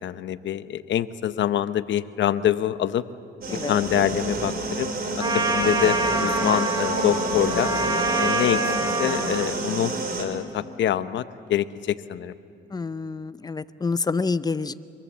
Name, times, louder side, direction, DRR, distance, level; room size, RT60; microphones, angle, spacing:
voice 1, 0.0-3.0 3.7-7.7 8.2-8.6 9.0-11.2 11.5-12.3, left 11 dB, 70° left, 13 dB, 0.8 m, -25 dB
sound 1, 3.4-10.2, right 2 dB, 50° right, 3.8 m, -29 dB
Trumpet, 5.2-9.5, right 2 dB, 20° right, 2.5 m, -26 dB
Wind instrument woodwind instrument, 5.4-9.1, left 10 dB, 90° left, 2.7 m, -37 dB
voice 2, 12.7-14.7, left 4 dB, 20° left, 14 dB, 0.6 m, -27 dB
24.5 x 23.0 x 7.3 m, 2.5 s
cardioid pair, 90°, 20 cm